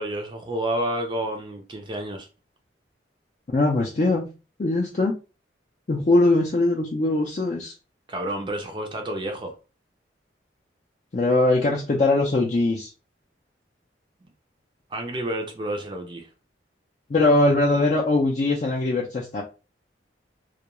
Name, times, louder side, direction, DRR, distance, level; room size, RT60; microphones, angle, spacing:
voice 1, 0.0-2.3 8.1-9.5 14.9-16.3, right 1 dB, 25° right, 0.4 m, -30 dB
voice 2, 3.5-4.3 4.6-5.1 5.9-7.7 11.1-12.9 17.1-19.4, left 2 dB, 40° left, 0.4 m, -21 dB
2.3 x 2.2 x 2.9 m
head